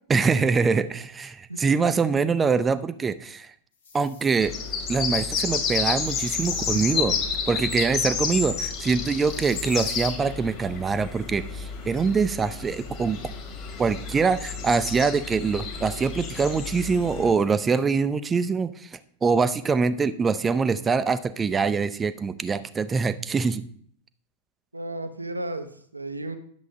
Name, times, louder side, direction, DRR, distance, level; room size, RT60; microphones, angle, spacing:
voice 1, 0.1-3.5 3.9-4.6 4.9-7.2 7.5-13.2 13.8-23.6, right 5 dB, 15° right, 14 dB, 0.4 m, -24 dB
sound 1, 3.7-4.4 5.9-6.9 9.2-10.1, left 5 dB, 65° left, 1.5 m, -49 dB
sound 2, 4.4-17.3, left 6 dB, 35° left, 1.9 m, -30 dB
voice 2, 6.7-7.2 24.7-26.4, right 2 dB, 85° right, 9 dB, 0.7 m, -34 dB
10.5 x 7.1 x 2.7 m, 0.62 s
figure-of-eight pair, 90°, 0 cm